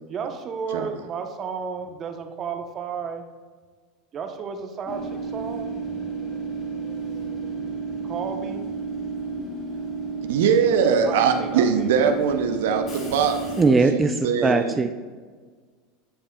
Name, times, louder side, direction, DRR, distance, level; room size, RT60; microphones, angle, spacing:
voice 1, 0.1-3.3 4.1-5.7 8.0-8.7 11.0-12.2 13.0-13.3, right 6 dB, 40° right, 5 dB, 0.9 m, -33 dB
Train / Subway metro underground, 4.9-13.6, right 4 dB, 35° left, 1.9 m, -32 dB
voice 2, 10.3-14.8, right 7 dB, 75° right, 6 dB, 0.6 m, -22 dB
voice 3, 13.6-14.9, right 3 dB, 20° right, 6 dB, 0.4 m, -20 dB
9.9 x 5.3 x 2.3 m, 1.5 s
hypercardioid pair, 90°, 0 cm